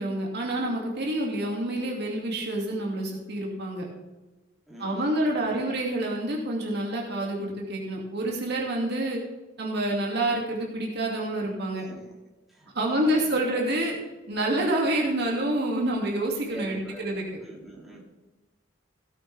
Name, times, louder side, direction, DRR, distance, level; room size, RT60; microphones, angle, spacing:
voice 1, 0.0-3.9 4.8-9.2 9.6-11.8 12.7-14.0 14.3-17.2, right 1 dB, 55° right, -1 dB, 2.4 m, -28 dB
voice 2, 4.7-5.7 11.8-12.2 12.5-13.6 16.5-18.0, right 1 dB, ahead, -5 dB, 3.0 m, -44 dB
16.5 x 8.4 x 3.5 m, 1.1 s
head